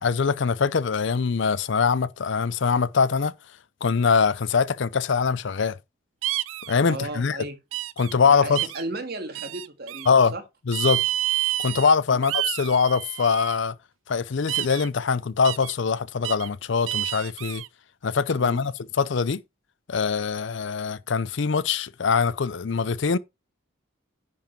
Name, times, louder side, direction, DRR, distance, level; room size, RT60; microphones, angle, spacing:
voice 1, 0.0-3.3 3.8-5.8 6.7-7.4 8.0-8.6 10.1-10.3 10.7-11.0 11.6-13.7 14.1-17.6 18.0-19.4 19.9-23.2, left 5 dB, 60° left, 0.5 m, -23 dB
sound 1, 6.2-6.7 7.7-8.1 8.6-8.8 9.3-10.1 10.7-11.9 12.2-13.6 14.5-14.9 15.4-15.7 16.2-16.5 16.9-17.7, right 15 dB, 80° right, 0.5 m, -29 dB
voice 2, 6.9-7.6 8.2-10.4 12.1-12.3 18.4-18.6, right 2 dB, 50° right, 2.0 m, -35 dB
10.5 x 5.3 x 4.5 m
head